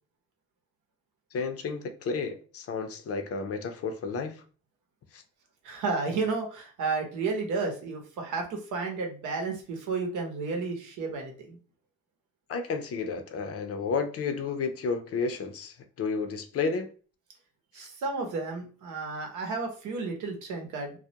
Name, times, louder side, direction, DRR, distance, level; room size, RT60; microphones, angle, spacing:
voice 1, 1.3-4.4 5.1-5.2 12.5-16.9 17.8-17.9, left 4 dB, 50° left, 0.5 m, -32 dB
voice 2, 5.6-11.6 17.7-21.0, right 4 dB, 85° right, 0.8 m, -32 dB
2.3 x 2.1 x 2.7 m
cardioid pair, 90°, 30 cm